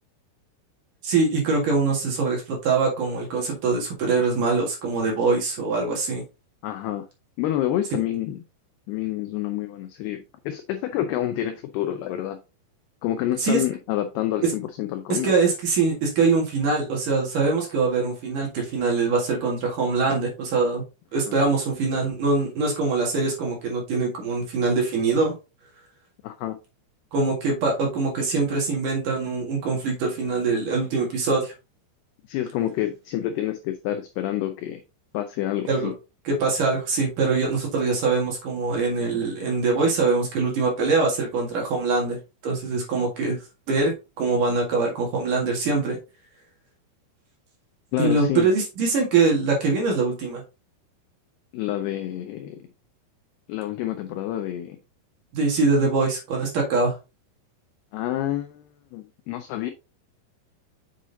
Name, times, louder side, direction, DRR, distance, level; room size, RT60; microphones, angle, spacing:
voice 1, 1.0-6.2 13.4-13.6 14.4-14.5 15.1-20.8 21.1-25.3 27.1-31.5 35.7-35.9 36.2-42.2 42.4-43.4 43.7-43.9 44.2-46.0 48.0-50.4 55.3-56.9, right 4 dB, 55° right, 2.9 m, -23 dB
voice 2, 6.6-7.1 7.4-8.4 8.9-12.4 13.0-15.3 21.3-21.4 26.2-26.6 32.3-34.8 35.1-35.9 47.9-48.5 51.5-52.6 53.5-54.8 57.9-59.7, left 12 dB, 85° left, 2.3 m, -28 dB
7.2 x 6.2 x 2.7 m
omnidirectional pair, 5.4 m